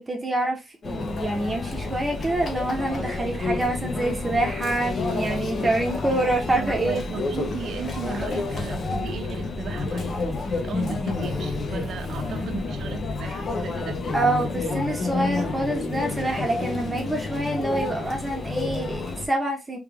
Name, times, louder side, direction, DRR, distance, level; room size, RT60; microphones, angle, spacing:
voice 1, 0.1-7.0 14.1-19.8, right 1 dB, 20° right, 1.2 m, -26 dB
Conversation / Chatter / Crowd, 0.8-19.3, left 3 dB, 45° left, 1.0 m, -29 dB
voice 2, 6.1-10.1 10.6-14.0, right 7 dB, 65° right, 0.7 m, -36 dB
3.3 x 3.3 x 3.4 m
cardioid pair, 90°, 0 cm